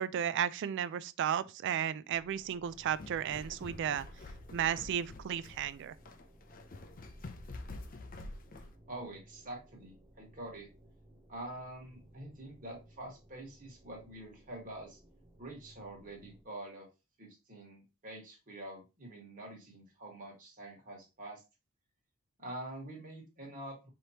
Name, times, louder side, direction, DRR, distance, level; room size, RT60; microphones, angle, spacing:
voice 1, 0.0-4.1 4.5-5.9, right 9 dB, 60° right, 0.3 m, -34 dB
sound 1, 2.1-16.4, right 1 dB, 10° right, 0.6 m, -60 dB
sound 2, 2.7-8.7, left 2 dB, 40° left, 0.5 m, -48 dB
voice 2, 8.9-10.7 11.3-15.0 15.4-16.9 17.2-21.4 22.4-23.9, right 1 dB, 40° right, 1.7 m, -46 dB
5.0 x 3.0 x 2.8 m
head